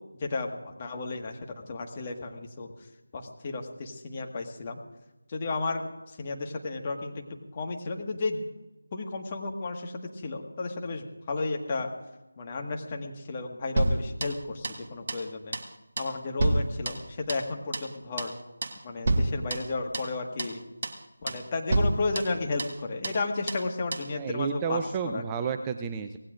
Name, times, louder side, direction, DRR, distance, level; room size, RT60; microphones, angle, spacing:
voice 1, 0.2-1.4 1.7-2.7 3.1-4.8 5.3-5.9 6.2-7.1 7.5-8.4 8.9-11.9 12.4-14.6 14.9-15.6 16.0-18.3 18.8-20.6 21.2-24.8 25.1-25.2, left 3 dB, 25° left, 2 dB, 1.6 m, -33 dB
sound 1, 13.8-14.8 15.1-15.3 15.5-15.7 16.0-17.5 17.7-17.9 18.2-18.4 18.6-18.8 19.1-20.1 20.4-20.6 20.8-21.0 21.3-21.5 21.7-22.8 23.0-23.2 23.5-23.7 23.9-24.1, right 2 dB, 40° right, 1.5 m, -29 dB
voice 2, 24.2-26.2, right 6 dB, 15° right, 6 dB, 0.5 m, -31 dB
25.0 x 18.5 x 2.5 m, 1.1 s
figure-of-eight pair, 165°, 0 cm